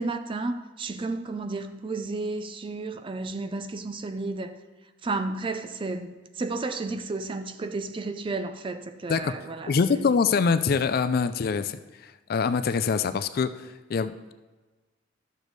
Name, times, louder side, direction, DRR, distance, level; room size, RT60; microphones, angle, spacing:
voice 1, 0.0-4.6 5.0-10.1, right 3 dB, 25° right, 0.4 m, -32 dB
voice 2, 9.7-11.8 12.3-13.5 13.9-14.3, left 5 dB, 50° left, 0.4 m, -24 dB
12.0 x 6.6 x 3.1 m
head